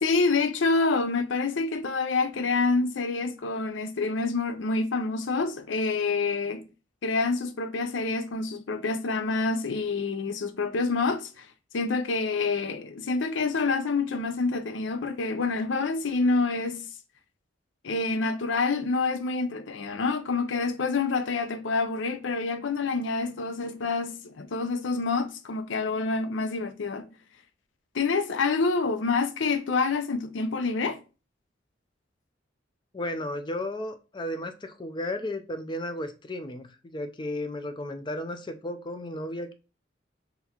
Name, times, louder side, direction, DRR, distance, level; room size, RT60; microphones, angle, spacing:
voice 1, 0.0-6.6 7.0-11.5 11.7-16.8 17.8-27.1 27.9-31.0, left 3 dB, 85° left, 0.6 m, -27 dB
voice 2, 32.9-39.5, left 1 dB, 25° left, 0.5 m, -34 dB
4.1 x 4.0 x 2.9 m
head